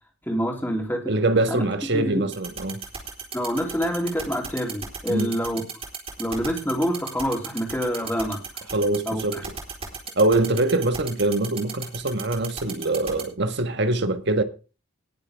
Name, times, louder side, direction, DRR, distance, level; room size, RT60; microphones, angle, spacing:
voice 1, 0.2-1.1 1.5-1.6 1.9-2.3 3.3-5.6 6.2-8.4 9.0-9.4, equal, 10° left, 3.3 m, -26 dB
voice 2, 1.1-2.8 5.1-5.3 8.7-9.4 10.1-14.4, right 2 dB, 55° right, 1.6 m, -23 dB
sound 1, 2.3-13.2, right 6 dB, 30° right, 4.1 m, -34 dB
19.5 x 7.6 x 3.6 m
head